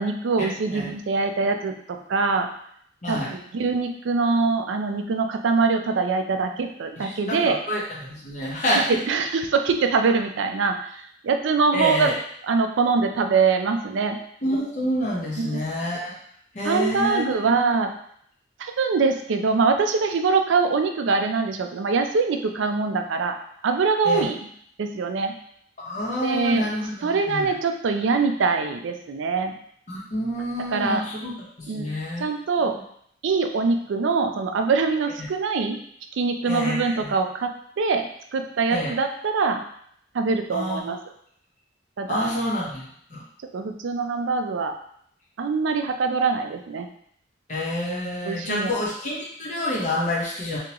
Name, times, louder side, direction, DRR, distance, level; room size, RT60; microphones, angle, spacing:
voice 1, 0.0-1.8 2.1-2.5 3.1-7.6 9.1-12.1 12.5-14.2 15.4-15.6 16.6-17.9 18.6-23.3 23.6-24.4 24.8-25.3 26.2-26.7 27.0-29.5 30.7-31.0 31.7-31.9 32.2-32.7 33.2-35.8 36.2-38.0 38.3-39.6 40.1-41.0 42.0-42.3 43.5-44.7 45.4-46.9 48.3-48.7, right 4 dB, 80° right, 5 dB, 0.4 m, -23 dB
voice 2, 3.0-3.3 7.0-8.9 11.7-12.1 14.4-16.1 16.5-17.7 24.0-24.3 25.8-27.5 29.9-31.3 31.6-32.3 32.6-32.8 36.5-37.1 38.7-38.9 40.5-40.8 42.1-42.8 43.1-43.2 47.5-50.6, equal, 40° left, -5 dB, 1.0 m, -28 dB
3.6 x 2.9 x 2.9 m, 0.67 s
head